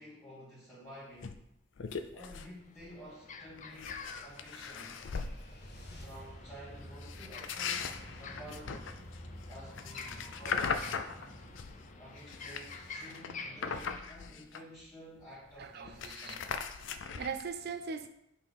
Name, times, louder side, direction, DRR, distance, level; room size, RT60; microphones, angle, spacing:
voice 1, 0.0-1.4 2.1-5.0 6.0-8.9 9.5-11.0 12.0-16.5, equal, 15° left, -10 dB, 1.5 m, -51 dB
sound 1, 1.2-1.4 1.8-2.5 2.8-3.1 3.6-5.4 7.0-11.8 12.2-14.9 15.2-15.3 15.5-17.5, left 5 dB, 80° left, 0.5 m, -39 dB
sound 2, 2.4-14.0, left 4 dB, 40° left, 0.7 m, -49 dB
sound 3, 4.4-13.4, equal, 60° left, 1.4 m, -51 dB
voice 2, 15.6-16.3 16.9-18.1, right 5 dB, 60° right, 9 dB, 0.5 m, -40 dB
5.6 x 4.3 x 5.2 m, 0.78 s
head